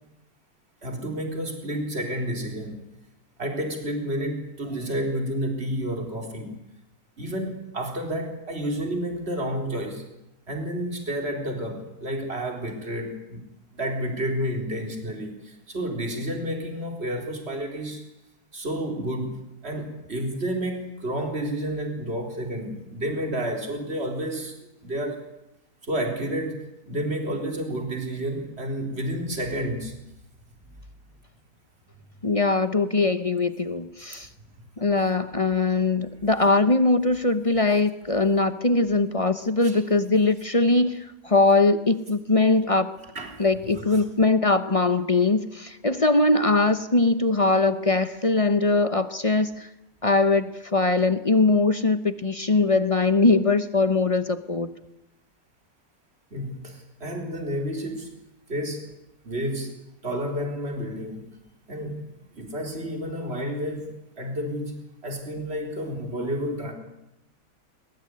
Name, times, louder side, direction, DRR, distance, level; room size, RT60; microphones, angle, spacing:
voice 1, 0.8-2.8 3.4-6.5 7.2-10.0 10.5-13.4 13.7-18.0 18.5-24.5 24.8-25.2 25.8-29.9 39.6-39.8 43.1-43.4 43.7-44.0 56.3-58.1 58.5-58.9 59.2-59.8 60.0-61.3 61.7-62.1 62.3-66.7, equal, 35° right, 3 dB, 4.2 m, -30 dB
voice 2, 32.2-34.3 34.8-42.9 43.4-49.7 50.0-54.7, left 3 dB, 25° left, 11 dB, 0.8 m, -21 dB
21.0 x 20.5 x 9.8 m, 0.88 s
omnidirectional pair, 1.8 m